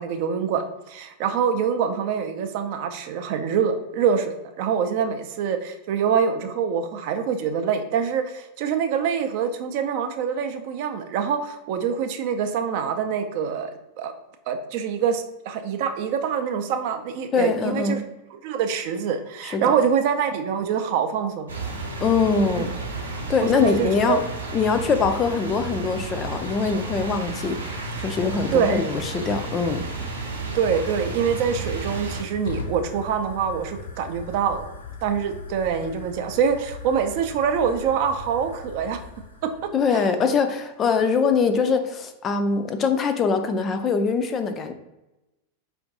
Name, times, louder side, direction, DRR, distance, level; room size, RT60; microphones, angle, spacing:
voice 1, 0.0-13.7 14.0-14.1 14.5-18.0 18.4-21.5 23.4-24.2 28.5-28.8 30.5-34.7 35.0-39.0 39.4-39.5 39.9-40.0, right 7 dB, 45° right, 7 dB, 0.4 m, -25 dB
voice 2, 17.3-18.0 19.5-19.8 22.0-22.7 23.3-24.2 24.5-29.9 39.7-44.7, left 5 dB, 25° left, 8 dB, 0.4 m, -23 dB
sound 1, 21.5-32.2, right 3 dB, 75° right, 0.7 m, -32 dB
Fire, 31.0-39.9, left 3 dB, 70° left, 0.6 m, -40 dB
4.5 x 2.5 x 3.8 m, 0.97 s
figure-of-eight pair, 90°, 0 cm